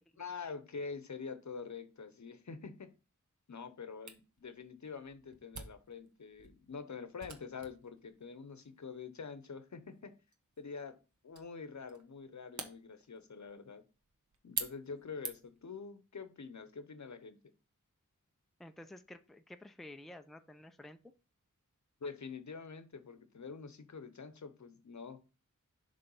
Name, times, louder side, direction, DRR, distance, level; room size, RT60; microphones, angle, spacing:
voice 1, 0.2-2.9 3.5-10.1 10.6-11.0 11.2-13.8 14.4-17.4 22.0-25.2, left 5 dB, 60° left, 11 dB, 0.9 m, -46 dB
Camera, 4.1-15.7, right 4 dB, 60° right, 1.2 m, -48 dB
voice 2, 18.6-21.0, left 1 dB, ahead, 8 dB, 0.6 m, -51 dB
6.8 x 3.4 x 5.5 m, 0.32 s
cardioid pair, 50°, 33 cm